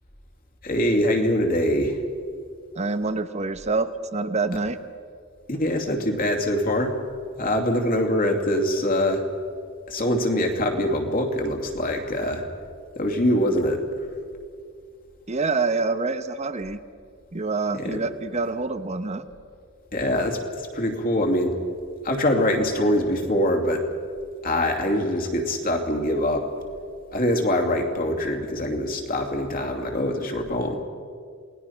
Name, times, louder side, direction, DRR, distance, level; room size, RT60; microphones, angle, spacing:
voice 1, 0.6-2.0 5.5-7.0 7.4-9.2 9.9-12.4 12.9-13.8 17.7-18.0 19.9-21.5 22.0-23.9 24.4-26.5 27.1-30.8, left 1 dB, 45° left, 2 dB, 2.7 m, -23 dB
voice 2, 2.8-4.8 15.3-16.8 17.3-19.3, right 3 dB, 35° right, 11 dB, 0.9 m, -26 dB
28.0 x 19.5 x 5.8 m, 2.2 s
head